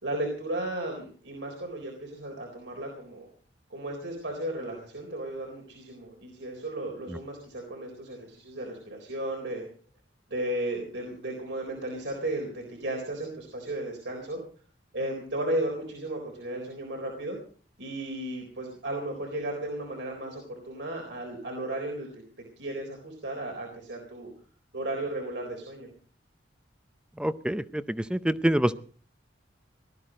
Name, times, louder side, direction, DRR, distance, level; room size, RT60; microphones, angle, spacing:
voice 1, 0.0-3.3 3.7-9.6 10.3-14.4 14.9-17.4 17.8-22.2 22.6-24.3 24.7-25.9, right 1 dB, 75° right, 1 dB, 3.9 m, -34 dB
voice 2, 27.2-27.8 28.1-28.7, right 1 dB, 5° right, 14 dB, 0.6 m, -25 dB
18.5 x 13.0 x 5.1 m, 0.43 s
head